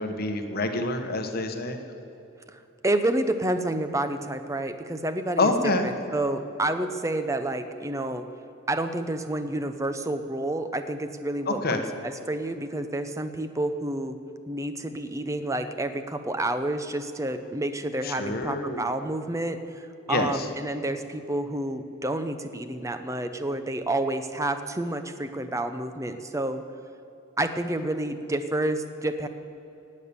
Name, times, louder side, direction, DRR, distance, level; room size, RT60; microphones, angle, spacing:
voice 1, 0.0-1.8 5.4-5.9 11.5-11.8 18.0-18.9 20.1-20.5, left 2 dB, 45° left, 5 dB, 1.2 m, -27 dB
voice 2, 2.8-8.2 8.7-14.2 14.5-26.6 27.4-29.3, right 1 dB, 15° right, 9 dB, 0.7 m, -29 dB
18.0 x 8.5 x 6.9 m, 3.0 s
head